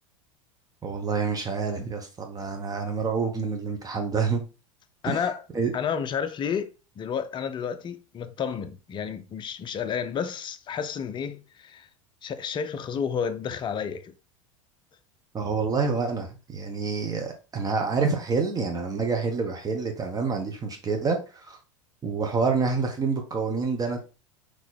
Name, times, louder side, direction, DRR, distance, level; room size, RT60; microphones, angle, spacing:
voice 1, 0.8-4.4 5.0-5.2 5.5-5.7 15.3-21.2 21.5-21.6 22.0-24.0, right 4 dB, 20° right, 1.2 m, -27 dB
voice 2, 5.0-5.4 5.7-11.9 12.2-14.1, left 7 dB, 25° left, 0.6 m, -31 dB
4.1 x 3.1 x 4.2 m
figure-of-eight pair, 85°, 17 cm